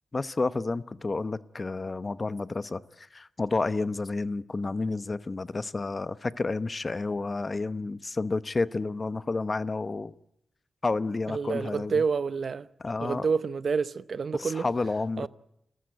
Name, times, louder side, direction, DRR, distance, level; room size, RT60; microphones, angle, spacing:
voice 1, 0.1-10.1 10.8-11.9 12.8-13.3 14.3-15.3, left 3 dB, 35° left, 0.9 m, -30 dB
voice 2, 11.3-12.7 13.0-14.6 15.2-15.3, right 5 dB, 65° right, 0.8 m, -28 dB
29.5 x 14.5 x 9.1 m
cardioid pair, 70°, 0 cm